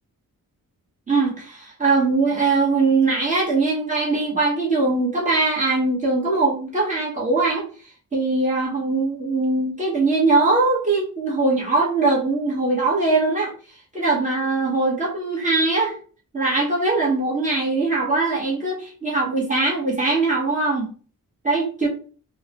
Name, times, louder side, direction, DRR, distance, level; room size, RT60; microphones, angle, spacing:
voice 1, 1.1-7.6 8.1-13.5 13.9-16.0 16.3-20.9 21.4-21.9, right 3 dB, 25° right, -5 dB, 1.1 m, -21 dB
3.7 x 2.1 x 2.8 m, 0.40 s
cardioid pair, 85°, 33 cm